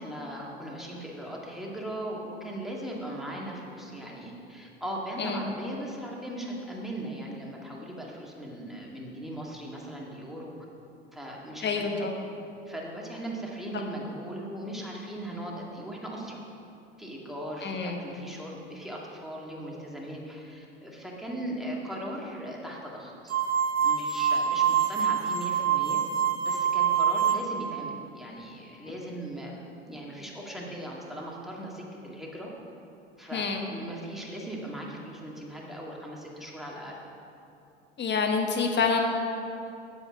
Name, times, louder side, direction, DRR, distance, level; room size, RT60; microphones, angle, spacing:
voice 1, 0.0-10.5 11.1-12.1 12.7-16.4 17.0-23.3 23.8-26.0 26.4-29.6 29.8-32.5 33.2-37.0, right 1 dB, ahead, -3 dB, 2.1 m, -38 dB
voice 2, 11.6-12.2 17.6-18.1 33.3-33.6 38.0-39.0, left 5 dB, 30° left, 3 dB, 1.4 m, -27 dB
sound 1, 23.3-27.7, right 8 dB, 45° right, 0.9 m, -25 dB
8.2 x 8.0 x 5.8 m, 2.7 s
figure-of-eight pair, 75°, 35 cm